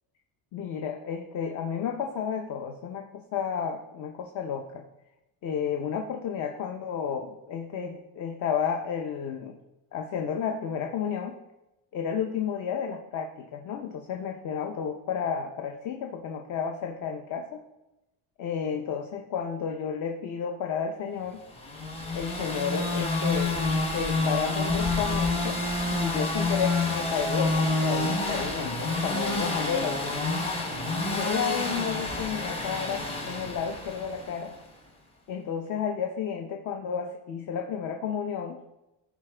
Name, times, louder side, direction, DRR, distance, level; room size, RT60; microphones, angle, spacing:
voice 1, 0.5-4.8 5.4-9.5 9.9-11.3 11.9-17.6 18.4-21.4 22.1-23.5 23.9-25.6 25.9-30.2 31.1-34.5 35.3-38.6, left 7 dB, 40° left, 3 dB, 0.7 m, -32 dB
sound 1, 21.6-34.5, left 2 dB, 15° left, 0.9 m, -28 dB
14.5 x 4.9 x 3.3 m, 0.94 s
cardioid pair, 175°, 45 cm